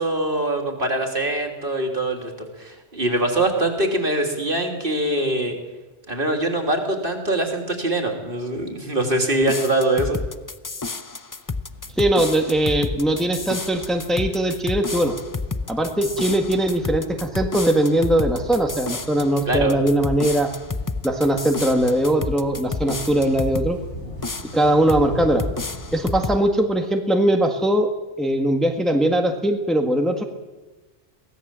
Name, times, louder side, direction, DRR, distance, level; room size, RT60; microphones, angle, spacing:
voice 1, 0.0-5.6 6.1-10.2 19.5-19.8, right 1 dB, 50° right, 3 dB, 3.3 m, -23 dB
sound 1, 9.4-23.7 24.2-25.1 25.4-26.4, left 3 dB, 20° left, 0.6 m, -30 dB
sound 2, 11.7-26.1, left 1 dB, 85° left, 5.9 m, -40 dB
voice 2, 12.0-15.1 15.7-20.5 21.0-23.8 24.5-25.4 25.9-27.9 28.2-30.2, right 1 dB, ahead, 4 dB, 1.6 m, -20 dB
23.0 x 17.5 x 7.6 m, 1.2 s
omnidirectional pair, 1.2 m